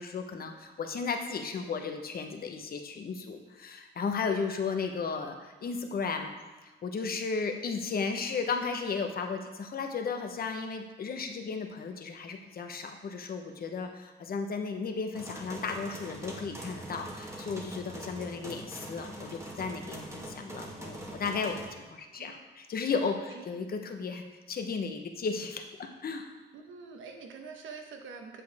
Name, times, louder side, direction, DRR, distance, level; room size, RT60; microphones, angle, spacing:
voice 1, 0.0-6.3 6.8-21.6 21.9-26.3, left 5 dB, 50° left, 4 dB, 1.1 m, -34 dB
sound 1, 15.1-21.7, right 1 dB, 15° right, 1.8 m, -43 dB
voice 2, 26.5-28.4, right 5 dB, 75° right, 4 dB, 1.3 m, -45 dB
8.6 x 7.5 x 3.5 m, 1.2 s
cardioid pair, 90°, 20 cm